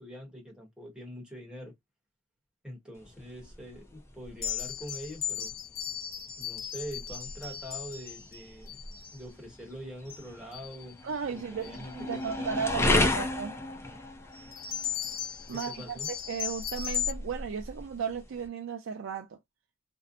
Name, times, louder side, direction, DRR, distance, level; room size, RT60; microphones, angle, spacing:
voice 1, 0.0-1.7 2.6-5.5 6.4-8.8 9.1-11.0 11.3-13.2 15.5-16.1, equal, 5° right, 0.9 m, -44 dB
sound 1, 2.9-18.5, left 2 dB, 15° left, 0.5 m, -35 dB
sound 2, 4.4-9.2 10.1-10.3 10.5-10.9 11.6-11.8 14.3-17.1, left 8 dB, 70° left, 1.0 m, -37 dB
voice 2, 11.0-13.5 15.5-19.4, right 6 dB, 75° right, 0.4 m, -35 dB
2.6 x 2.0 x 2.4 m
head